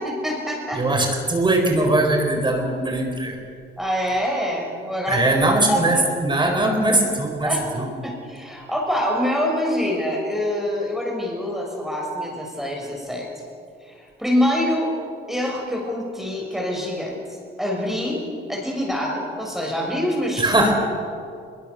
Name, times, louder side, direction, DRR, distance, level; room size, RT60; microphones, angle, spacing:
voice 1, 0.0-1.0 3.8-6.1 7.4-7.7 8.0-13.3 13.8-14.9 15.3-18.2 18.5-20.4, equal, ahead, -1 dB, 6.3 m, -25 dB
voice 2, 0.7-3.4 5.1-6.0 6.2-7.9 20.4-20.7, right 2 dB, 25° right, 3 dB, 4.4 m, -20 dB
22.0 x 21.0 x 6.9 m, 2.3 s
cardioid pair, 90°, 20 cm